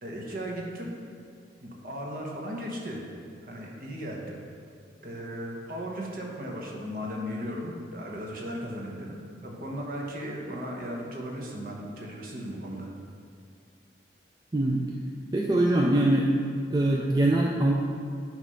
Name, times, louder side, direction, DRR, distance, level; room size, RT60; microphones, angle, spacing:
voice 1, 0.0-1.0 1.6-3.1 3.4-4.4 5.0-12.9, equal, 50° right, -1 dB, 1.1 m, -36 dB
voice 2, 14.5-14.9 15.3-16.3 16.7-17.7, right 1 dB, 20° right, -2 dB, 0.4 m, -23 dB
9.2 x 3.2 x 5.4 m, 2.2 s
head